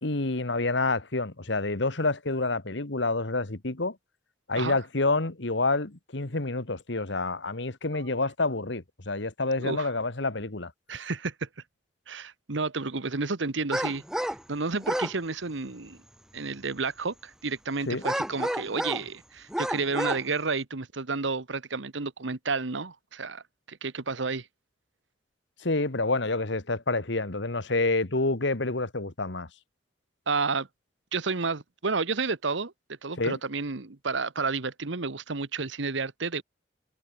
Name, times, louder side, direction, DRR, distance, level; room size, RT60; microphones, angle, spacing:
voice 1, 0.0-4.0 4.5-10.7 17.9-18.0 25.6-29.5 33.2-33.4, left 3 dB, 70° left, 1.7 m, -28 dB
voice 2, 10.9-11.5 12.1-16.0 16.3-24.5 30.3-30.7 31.1-32.7 33.0-36.4, right 4 dB, 75° right, 1.2 m, -31 dB
sound 1, 13.7-14.4 14.8-15.1 18.0-19.1 19.5-20.2, equal, 5° right, 1.0 m, -30 dB
head